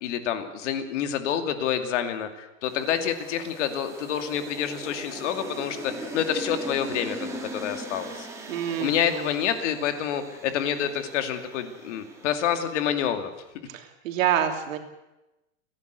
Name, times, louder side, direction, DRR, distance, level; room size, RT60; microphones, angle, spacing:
voice 1, 0.0-8.3 8.8-13.3, left 9 dB, 60° left, 7 dB, 2.5 m, -28 dB
sound 1, 2.6-13.0, right 2 dB, 5° right, 2.2 m, -40 dB
voice 2, 8.5-9.3 13.7-14.8, right 10 dB, 75° right, 5 dB, 3.1 m, -27 dB
29.5 x 11.0 x 8.2 m, 0.98 s
supercardioid pair, 175°, 40 cm